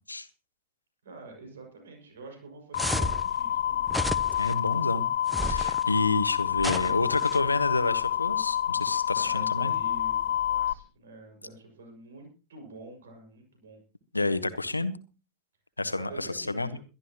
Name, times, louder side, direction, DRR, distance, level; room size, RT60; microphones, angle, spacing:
voice 1, 1.0-3.8 9.1-13.8 15.9-16.8, right 3 dB, 65° right, 3 dB, 6.1 m, -47 dB
sound 1, 2.7-10.7, left 10 dB, 60° left, 1.0 m, -28 dB
sound 2, 2.8-3.3 3.9-4.5 5.3-5.8 6.6-7.4, equal, ahead, 0.8 m, -32 dB
voice 2, 4.4-5.1 5.4-9.7 14.1-14.9 15.8-16.8, left 2 dB, 80° left, 14 dB, 1.2 m, -29 dB
22.0 x 12.5 x 3.0 m, 0.34 s
figure-of-eight pair, 90°, 0 cm